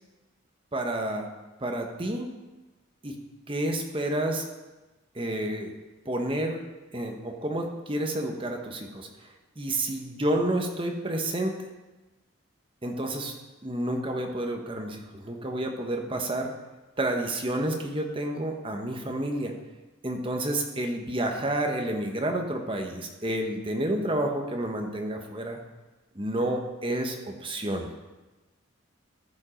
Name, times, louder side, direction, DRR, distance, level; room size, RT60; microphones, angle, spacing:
voice 1, 0.7-1.3 1.6-2.3 3.0-3.2 3.5-4.5 5.1-5.8 6.0-6.6 6.9-9.1 9.6-11.6 12.8-13.3 13.6-16.5 17.0-19.5 20.0-25.6 26.1-27.9, right 1 dB, 25° right, 3 dB, 1.0 m, -30 dB
14.0 x 5.3 x 5.1 m, 1.1 s
head